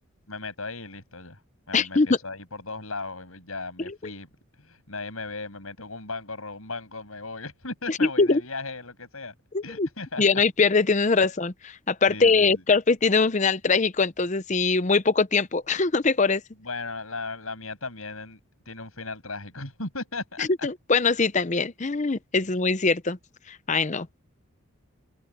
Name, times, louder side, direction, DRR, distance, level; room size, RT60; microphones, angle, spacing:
voice 1, 0.3-1.4 1.7-4.3 4.6-9.3 9.6-10.2 12.1-12.6 16.6-18.4 18.7-20.7, left 3 dB, 75° left, 7.4 m, -36 dB
voice 2, 1.7-2.1 3.9-4.0 7.9-8.4 9.5-9.9 10.2-16.4 20.4-23.2 23.5-24.2, left 4 dB, 35° left, 0.6 m, -22 dB
head